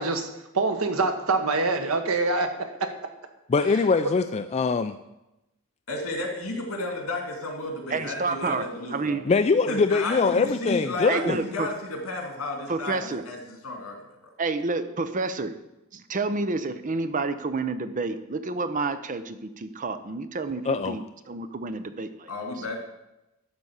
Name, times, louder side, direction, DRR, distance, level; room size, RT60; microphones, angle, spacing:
voice 1, 0.0-2.5, right 3 dB, 80° right, 6 dB, 1.3 m, -25 dB
voice 2, 3.5-4.9 9.3-11.4 20.7-20.9, left 4 dB, 30° left, 8 dB, 0.3 m, -23 dB
voice 3, 5.9-9.2 9.7-14.0 22.3-22.8, left 2 dB, 85° left, 2 dB, 2.6 m, -33 dB
voice 4, 7.9-9.3 11.1-11.7 12.7-13.2 14.4-15.5 15.9-22.3, right 3 dB, 40° right, 11 dB, 0.6 m, -29 dB
12.0 x 4.2 x 8.0 m, 0.93 s
head